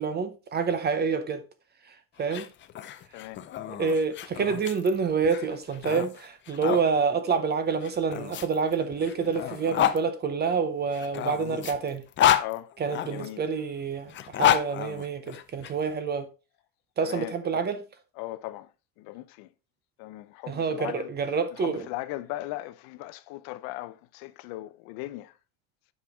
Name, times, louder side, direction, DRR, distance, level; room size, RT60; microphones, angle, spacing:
voice 1, 0.0-1.4 2.2-2.5 3.7-12.0 12.8-16.3 17.0-17.8 20.5-21.9, right 5 dB, 25° right, 0.7 m, -27 dB
sound 1, 2.2-6.8 7.8-10.0 10.9-13.3 14.1-15.7, left 11 dB, 30° left, 0.5 m, -29 dB
voice 2, 3.1-3.5 6.6-6.8 12.4-12.7 13.1-13.4 17.0-17.6 18.2-18.7 19.0-19.5 20.0-21.1 21.5-25.3, left 16 dB, 70° left, 0.7 m, -38 dB
8.7 x 5.3 x 3.6 m
cardioid pair, 145°, 39 cm